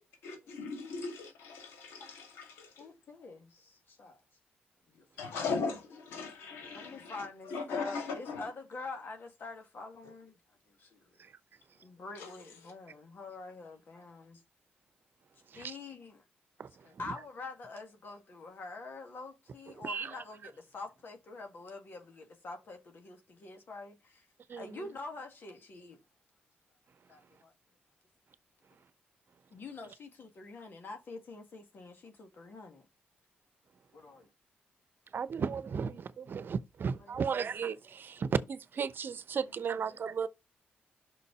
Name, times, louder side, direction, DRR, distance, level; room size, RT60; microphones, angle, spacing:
voice 1, 0.2-2.9 5.2-8.5 12.1-12.3 12.6-12.7, left 4 dB, 90° left, 2.2 m, -39 dB
voice 2, 2.8-4.2 4.9-5.3 6.7-10.4 10.7-11.2 11.7-14.4 15.5-16.2 16.8-24.3 24.6-26.0 27.1-27.5 29.5-32.8 33.9-34.3 37.1-37.2 39.4-39.5 39.9-40.0, left 3 dB, 60° left, 2.1 m, -46 dB
voice 3, 16.6-17.1 19.8-20.1 24.5-24.9 35.1-40.3, right 6 dB, 60° right, 0.8 m, -35 dB
6.1 x 4.0 x 6.1 m
supercardioid pair, 50°, 4 cm